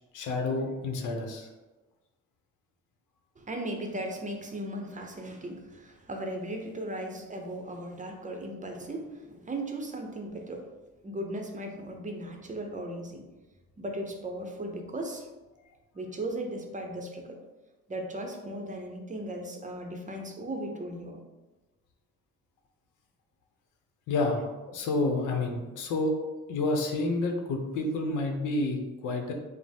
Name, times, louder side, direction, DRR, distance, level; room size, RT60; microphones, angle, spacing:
voice 1, 0.1-1.5 24.1-26.2 26.5-29.3, left 2 dB, 85° left, 3 dB, 0.7 m, -29 dB
voice 2, 3.4-10.7 11.0-13.2 13.8-15.3 15.9-17.4 17.9-21.2, right 1 dB, 25° right, 3 dB, 0.6 m, -37 dB
5.1 x 2.0 x 3.4 m, 1.2 s
cardioid pair, 90°, 30 cm